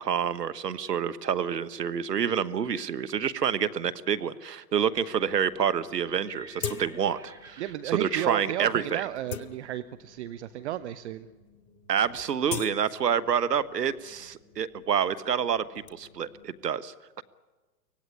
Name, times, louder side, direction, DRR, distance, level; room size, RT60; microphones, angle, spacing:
voice 1, 0.0-7.6 8.0-9.0 11.9-15.6 15.9-17.2, right 8 dB, 80° right, 13 dB, 1.4 m, -28 dB
sound 1, 4.9-16.6, left 3 dB, 35° left, 7.7 m, -60 dB
Livestock farm animals working animals, 5.3-11.1, right 1 dB, 5° right, 2.9 m, -55 dB
sound 2, 5.5-5.6 5.8-5.9 6.6-7.3 7.7-7.8 8.4-8.6 9.0-10.2 10.8-10.9 11.2-11.5 11.8-13.7 14.0-15.9, left 7 dB, 60° left, 1.9 m, -40 dB
voice 2, 7.6-11.3, right 12 dB, 45° right, 13 dB, 0.8 m, -33 dB
24.5 x 18.0 x 9.9 m, 1.3 s
hypercardioid pair, 120°, 48 cm